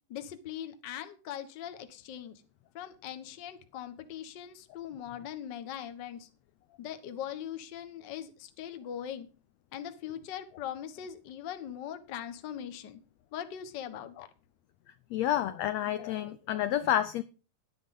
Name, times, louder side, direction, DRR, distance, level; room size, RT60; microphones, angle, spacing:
voice 1, 0.1-2.4 2.7-6.3 6.8-9.3 9.7-13.0 13.3-14.3, left 10 dB, 60° left, 1.2 m, -41 dB
voice 2, 15.1-17.2, left 11 dB, 80° left, 1.5 m, -29 dB
12.0 x 10.0 x 5.4 m
omnidirectional pair, 3.9 m